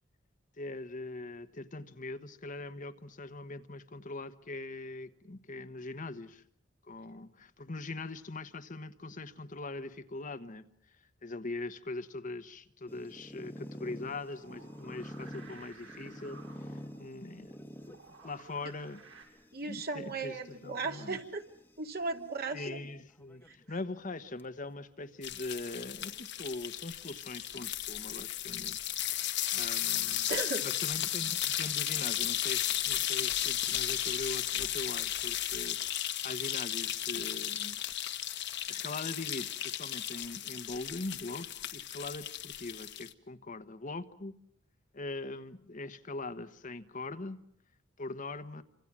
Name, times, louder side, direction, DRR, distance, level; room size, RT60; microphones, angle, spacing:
voice 1, 0.6-6.4 6.8-10.6 11.2-17.5 17.9-18.0 18.2-19.0 19.6-21.2 22.5-28.8 29.5-30.3 30.6-35.8 36.2-37.8 38.7-44.3 44.9-47.4 48.0-48.6, left 2 dB, 40° left, 9 dB, 1.2 m, -42 dB
sound 1, 12.9-22.3 23.1-23.6 24.0-24.1 24.4-24.5 25.4-26.5, equal, 10° left, 1.4 m, -49 dB
sound 2, 14.2-19.2, right 4 dB, 75° right, 7.4 m, -56 dB
voice 2, 19.5-21.4 21.8-22.6 30.3-30.7, right 3 dB, 50° right, 4 dB, 2.8 m, -36 dB
sound 3, 25.2-43.1, left 12 dB, 60° left, 1.6 m, -34 dB
28.0 x 26.0 x 7.5 m, 0.67 s
head